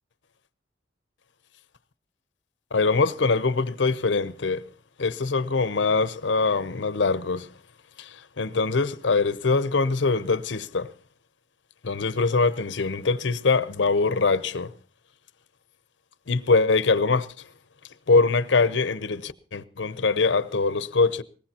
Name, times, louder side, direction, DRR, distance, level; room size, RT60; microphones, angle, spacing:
voice 1, 2.7-4.7 5.0-7.5 8.0-10.9 11.8-14.7 16.3-17.3 18.1-21.2, left 4 dB, 75° left, 0.7 m, -23 dB
20.5 x 18.5 x 2.9 m
head